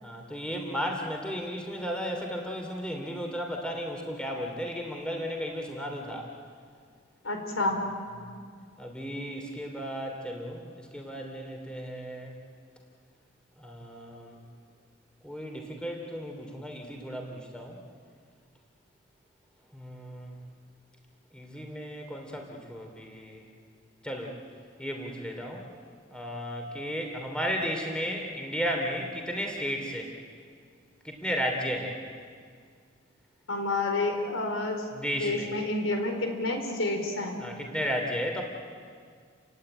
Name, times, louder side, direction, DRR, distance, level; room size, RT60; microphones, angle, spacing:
voice 1, 0.0-6.2 8.2-8.3 8.8-12.3 13.6-14.4 15.2-17.8 19.7-20.3 21.3-23.4 24.0-24.3 24.8-25.6 26.1-30.1 31.0-32.0 34.9-35.5 37.4-38.4, equal, 5° left, 2 dB, 3.1 m, -34 dB
voice 2, 7.2-7.8 33.5-34.8 35.1-37.4, left 2 dB, 85° left, 4 dB, 4.4 m, -29 dB
30.0 x 17.5 x 9.9 m, 2.1 s
head